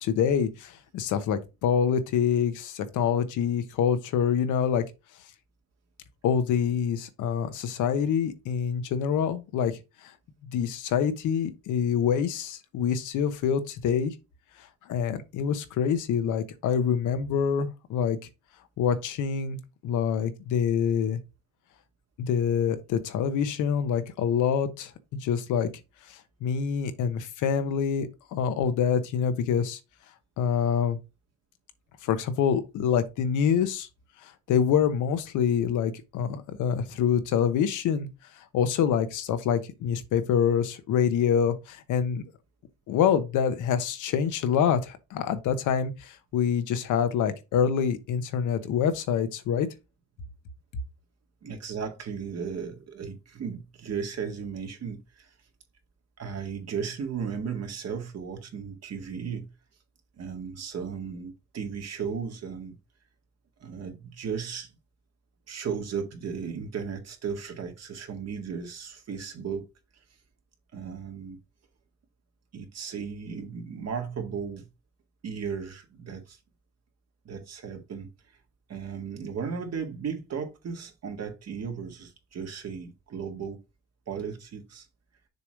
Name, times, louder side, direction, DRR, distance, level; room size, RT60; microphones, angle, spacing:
voice 1, 0.0-4.8 6.2-9.8 10.5-14.1 14.9-18.2 18.8-19.6 19.8-21.2 22.2-24.9 25.2-25.7 26.1-29.8 30.4-31.0 32.0-33.9 34.2-38.1 38.5-42.2 42.9-49.7, left 7 dB, 85° left, 1.1 m, -26 dB
voice 2, 51.4-55.3 56.2-59.5 60.2-62.7 63.6-64.7 65.5-69.6 70.7-71.4 72.5-74.7 75.2-76.4 77.3-78.1 78.7-83.6 84.1-84.9, right 6 dB, 55° right, 1.9 m, -35 dB
6.8 x 3.1 x 5.1 m
cardioid pair, 90°, 30 cm